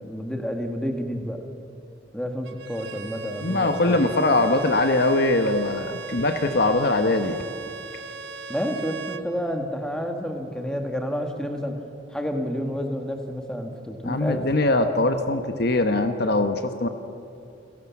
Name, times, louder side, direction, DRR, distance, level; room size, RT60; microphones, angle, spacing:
voice 1, 0.0-1.4 2.1-4.1 8.5-11.8 12.1-14.4, equal, 5° left, 4 dB, 1.8 m, -30 dB
Bowed string instrument, 2.5-9.3, right 6 dB, 70° right, 1.2 m, -38 dB
voice 2, 3.4-7.4 14.0-16.9, left 2 dB, 55° left, 8 dB, 1.2 m, -22 dB
29.0 x 17.5 x 7.3 m, 2.7 s
head